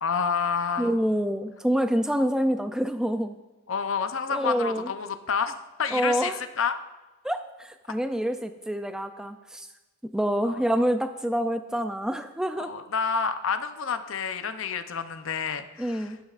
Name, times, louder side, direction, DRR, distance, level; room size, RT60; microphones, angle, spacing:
voice 1, 0.0-1.0 3.7-5.5 5.8-6.8 10.4-10.7 12.6-16.1, left 6 dB, 65° left, 9 dB, 0.6 m, -29 dB
voice 2, 0.8-3.4 4.3-4.9 5.9-6.4 7.2-9.7 10.1-12.7 15.8-16.2, equal, 5° right, 8 dB, 0.3 m, -27 dB
13.0 x 11.0 x 2.5 m, 1.1 s
head